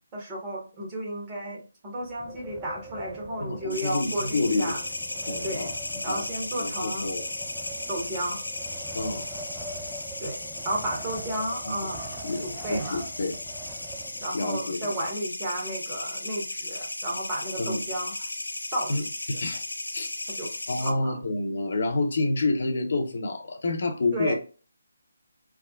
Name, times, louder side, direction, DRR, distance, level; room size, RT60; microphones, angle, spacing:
voice 1, 0.1-4.8 5.4-5.7 6.0-7.1 7.9-8.4 10.2-13.0 14.2-18.3 18.7-19.3 20.4-20.5 20.8-21.2 24.1-24.3, right 1 dB, 20° right, -3 dB, 1.1 m, -33 dB
Wind, 2.0-14.6, right 2 dB, 5° right, 0.3 m, -43 dB
voice 2, 3.4-4.8 5.3-6.2 6.6-7.2 8.9-9.2 11.6-11.7 12.2-13.4 14.3-14.9 17.6-17.8 18.9-19.0 19.3-19.6 19.9-20.1 20.7-24.3, left 2 dB, 55° left, 3 dB, 0.7 m, -28 dB
sound 1, 3.7-20.9, left 2 dB, 85° left, 0.5 m, -35 dB
3.4 x 2.1 x 2.3 m, 0.36 s
figure-of-eight pair, 150°, 0 cm